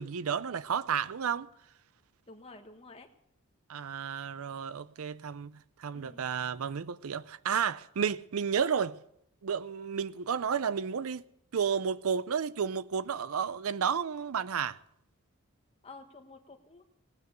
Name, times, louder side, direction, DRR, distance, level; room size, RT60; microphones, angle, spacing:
voice 1, 0.0-1.5 3.7-5.5 5.8-9.0 9.4-11.2 11.5-14.8, right 7 dB, 80° right, 0.5 m, -32 dB
voice 2, 2.3-3.1 4.1-4.2 5.9-6.2 15.8-16.8, left 3 dB, 25° left, 1.3 m, -51 dB
18.5 x 9.4 x 6.7 m
head